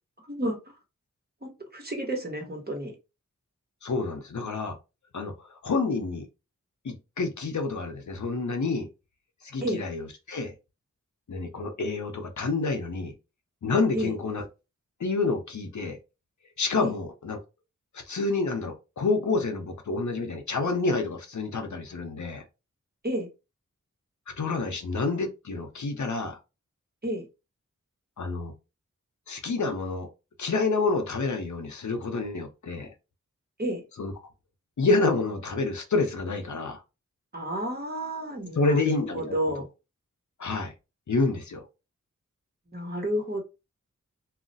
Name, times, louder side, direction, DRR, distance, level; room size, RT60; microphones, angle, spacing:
voice 1, 0.3-0.6 1.4-2.9 9.6-9.8 13.9-14.1 16.8-16.9 23.0-23.3 27.0-27.3 33.6-33.8 37.3-39.7 42.7-43.4, right 1 dB, 30° right, 1.1 m, -31 dB
voice 2, 3.8-4.8 5.1-6.3 6.8-8.9 9.4-10.5 11.3-13.1 13.6-14.4 15.0-16.0 16.6-17.4 18.1-22.4 24.4-26.4 28.2-28.5 29.3-30.1 30.4-32.9 34.0-34.1 34.8-36.8 38.5-39.3 40.4-40.7 41.1-41.6, left 3 dB, 65° left, 0.7 m, -28 dB
2.4 x 2.1 x 3.9 m
wide cardioid pair, 60°, 31 cm